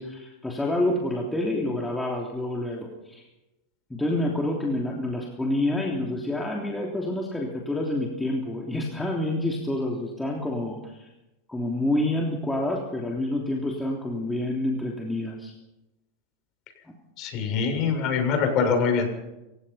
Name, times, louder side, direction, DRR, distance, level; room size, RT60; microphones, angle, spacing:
voice 1, 0.0-3.2 3.9-11.1 11.5-15.5, left 1 dB, 5° left, -1 dB, 3.2 m, -28 dB
voice 2, 17.2-19.1, left 5 dB, 45° left, 6 dB, 7.0 m, -24 dB
27.5 x 16.5 x 5.7 m, 0.97 s
supercardioid pair, 135°, 0 cm